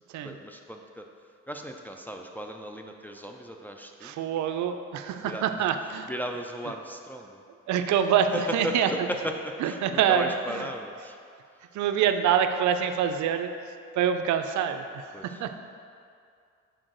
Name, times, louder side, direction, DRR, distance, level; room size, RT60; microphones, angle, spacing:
voice 1, 0.2-1.1 1.5-4.2 5.2-5.7 6.1-7.4 8.3-11.2 11.5-11.6 15.1-15.6, right 1 dB, 5° left, 2 dB, 0.4 m, -36 dB
voice 2, 4.0-6.1 7.7-8.9 9.6-10.6 11.7-13.5 14.0-15.6, right 8 dB, 75° right, 7 dB, 0.5 m, -26 dB
6.2 x 4.5 x 3.9 m, 2.3 s
cardioid pair, 90°, 30 cm